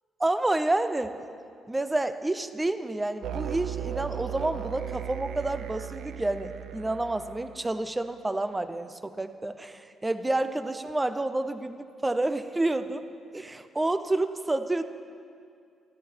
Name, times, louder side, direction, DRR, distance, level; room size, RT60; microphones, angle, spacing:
voice 1, 0.2-1.1 1.7-13.0 13.3-14.8, right 2 dB, 10° right, 11 dB, 0.6 m, -29 dB
sound 1, 3.2-7.8, right 10 dB, 75° right, 0.7 m, -36 dB
13.5 x 13.5 x 6.1 m, 2.3 s
cardioid pair, 150°, 0 cm